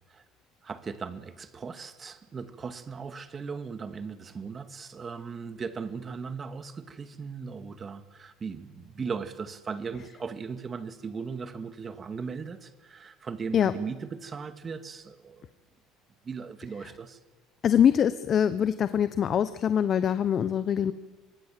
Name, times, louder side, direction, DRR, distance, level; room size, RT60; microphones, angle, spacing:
voice 1, 0.6-15.5 16.2-17.2, right 5 dB, 35° right, 10 dB, 2.1 m, -38 dB
voice 2, 17.6-20.9, left 8 dB, 50° left, 13 dB, 1.1 m, -23 dB
25.0 x 20.5 x 7.7 m, 1.4 s
hypercardioid pair, 75°, 0 cm